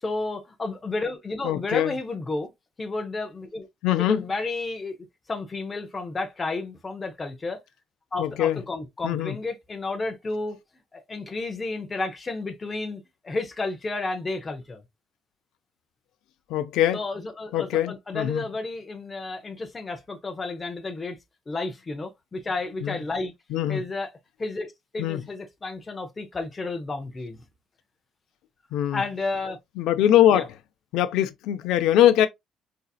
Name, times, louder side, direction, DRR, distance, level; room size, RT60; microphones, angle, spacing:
voice 1, 0.0-2.5 2.8-3.7 4.0-5.0 5.3-7.6 8.1-10.6 10.9-14.8 16.9-21.2 21.5-23.3 23.7-24.1 24.4-27.4 28.9-29.6 30.3-30.4, left 3 dB, 15° left, 0.7 m, -32 dB
voice 2, 1.4-1.9 3.8-4.2 8.2-8.6 9.0-9.3 16.5-17.0 17.5-18.4 22.8-23.0 23.5-23.8 25.0-25.2 28.7-29.0 29.8-30.5 30.9-32.3, left 11 dB, 85° left, 0.4 m, -22 dB
3.9 x 2.7 x 2.3 m
cardioid pair, 180°, 0 cm